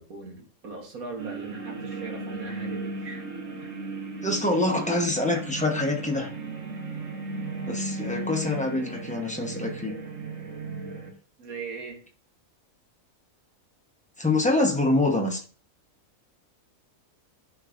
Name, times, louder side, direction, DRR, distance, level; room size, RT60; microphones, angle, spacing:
voice 1, 0.0-3.3 3.6-3.8 11.4-12.0, right 4 dB, 80° right, 1.7 m, -39 dB
sound 1, 1.2-11.1, right 3 dB, 50° right, 1.6 m, -36 dB
voice 2, 4.2-6.3 7.7-10.0 14.2-15.4, left 2 dB, 5° left, 0.7 m, -25 dB
10.5 x 4.1 x 2.5 m
omnidirectional pair, 1.5 m